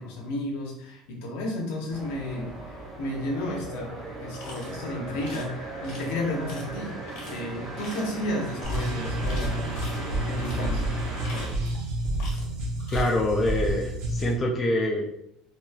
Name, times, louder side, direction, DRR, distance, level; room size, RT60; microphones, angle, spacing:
voice 1, 0.0-10.9, left 1 dB, 75° left, 0 dB, 0.8 m, -33 dB
sound 1, 1.9-11.5, right 2 dB, 30° right, 0.7 m, -37 dB
sound 2, 4.3-4.7 5.2-5.5 5.8-6.1 6.5-6.6 7.1-7.4 7.8-8.1 8.6-8.9 9.2-10.0 10.4-10.6 11.1-11.8 12.2-12.5 12.8-13.1, left 2 dB, 55° left, 1.4 m, -43 dB
sound 3, 8.6-14.3, right 1 dB, 70° right, 0.7 m, -29 dB
voice 2, 12.9-15.0, left 1 dB, 15° left, -1 dB, 0.3 m, -25 dB
3.0 x 2.7 x 2.2 m, 0.77 s
cardioid pair, 175°, 0 cm